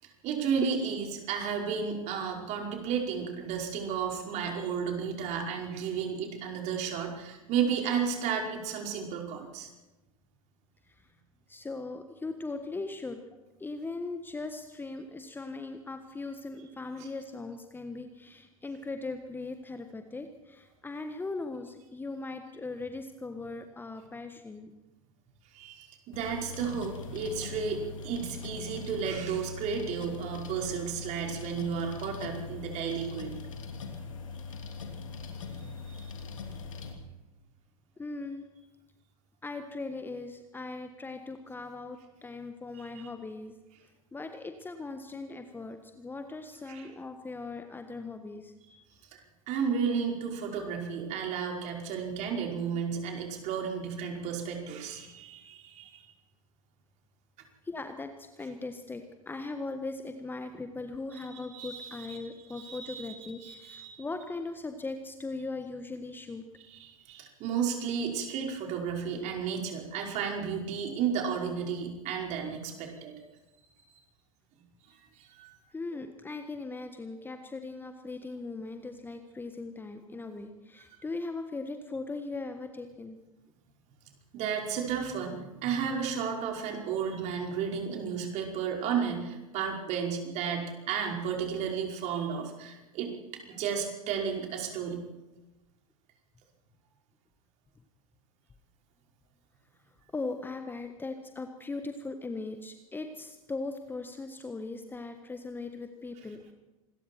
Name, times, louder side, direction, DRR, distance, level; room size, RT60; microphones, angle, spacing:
voice 1, 0.0-9.7 17.0-17.1 25.5-33.4 35.6-36.0 46.7-46.9 48.6-48.8 49.1-49.2 49.5-56.1 61.1-61.3 61.5-62.2 62.5-64.0 66.8-73.1 75.2-75.6 84.3-93.1 93.5-95.0, right 6 dB, 40° right, 1 dB, 5.2 m, -33 dB
voice 2, 11.5-13.2 13.6-24.7 38.0-38.5 39.4-43.5 44.1-48.5 57.6-66.4 75.7-83.2 100.1-106.5, left 3 dB, 10° left, 7 dB, 1.5 m, -39 dB
sound 1, 26.1-36.9, left 5 dB, 65° left, 3.1 m, -41 dB
26.5 x 21.5 x 4.6 m, 1.1 s
figure-of-eight pair, 85°, 18 cm